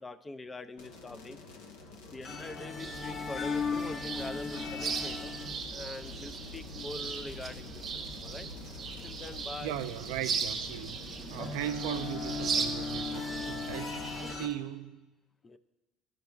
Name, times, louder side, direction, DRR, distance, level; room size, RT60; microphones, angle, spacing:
voice 1, 0.0-1.4 2.0-5.3 5.7-8.5 9.0-9.8 15.4-15.6, left 2 dB, 20° left, 0.4 m, -43 dB
sound 1, 0.8-14.5, left 3 dB, 90° left, 0.9 m, -50 dB
sound 2, 2.2-14.5, left 4 dB, 45° left, 0.7 m, -39 dB
sound 3, 2.8-14.4, right 5 dB, 45° right, 0.6 m, -38 dB
voice 2, 9.6-11.0 11.3-14.0 14.3-15.1, right 12 dB, 85° right, 0.4 m, -38 dB
14.0 x 5.2 x 2.4 m
supercardioid pair, 90°, 0 cm